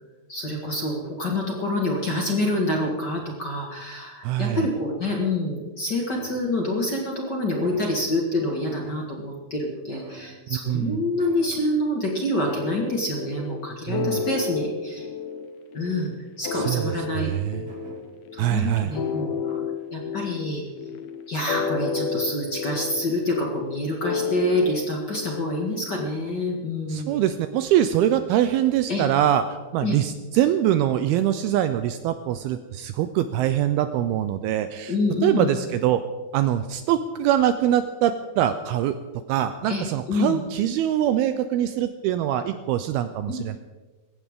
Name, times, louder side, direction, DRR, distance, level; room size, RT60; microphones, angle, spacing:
voice 1, 0.3-15.1 15.7-16.1 16.4-17.3 18.3-19.6 19.9-20.6 21.3-27.3 28.9-29.0 29.8-30.0 34.9-35.5 39.7-40.4 43.3-43.4, left 1 dB, 50° left, 0 dB, 1.2 m, -27 dB
voice 2, 4.2-4.7 10.5-11.0 13.9-14.3 16.5-16.8 17.2-17.6 18.4-18.9 26.9-29.4 29.7-34.9 35.2-36.0 36.3-39.0 39.3-43.6, right 11 dB, 80° right, 10 dB, 2.4 m, -23 dB
sound 1, 6.1-6.8 7.6-8.4 8.7-9.4 9.9-10.7 11.2-12.1 12.4-13.0 14.1-14.7 16.4-17.1 17.7-18.2 18.9-19.5, right 5 dB, 50° right, 4.6 m, -45 dB
sound 2, 12.6-26.3, left 5 dB, 75° left, 1.7 m, -31 dB
20.5 x 16.0 x 3.7 m, 1.2 s
omnidirectional pair, 4.7 m